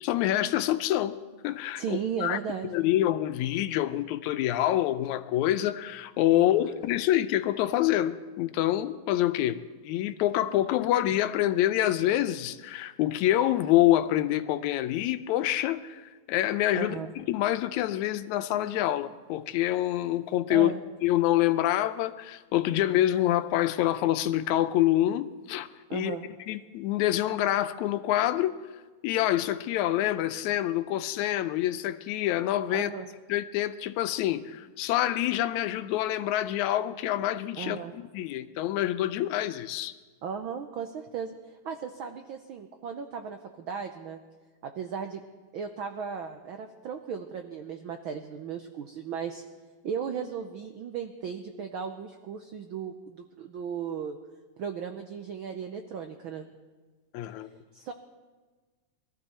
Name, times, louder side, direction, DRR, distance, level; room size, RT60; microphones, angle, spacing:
voice 1, 0.0-1.2 1.4-2.4 2.7-20.7 21.0-26.2 26.5-28.6 29.0-32.9 33.3-39.9 57.1-57.5, left 13 dB, 80° left, 2.0 m, -26 dB
voice 2, 1.8-2.8 6.3-6.7 16.7-17.1 20.5-20.8 25.9-26.2 32.7-33.1 37.6-38.0 40.2-44.2 44.6-45.2 45.5-49.4 49.8-54.2 54.6-56.5 57.7-57.9, right 7 dB, 80° right, 1.1 m, -36 dB
21.5 x 14.0 x 4.4 m
omnidirectional pair, 3.3 m